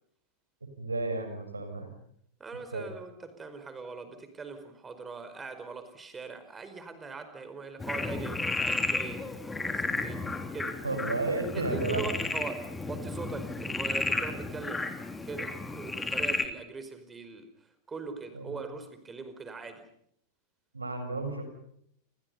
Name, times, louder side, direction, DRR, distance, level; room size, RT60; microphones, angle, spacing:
voice 1, 0.8-1.9 2.7-2.9 10.8-12.0 18.3-18.6 20.7-21.4, right 2 dB, 80° right, 7 dB, 6.7 m, -32 dB
voice 2, 2.4-10.8 11.5-14.9 15.2-19.9, right 4 dB, 15° right, 9 dB, 5.1 m, -41 dB
Frog, 7.8-16.5, left 3 dB, 10° left, 3.2 m, -33 dB
29.5 x 27.5 x 5.6 m, 0.70 s
figure-of-eight pair, 90°, 0 cm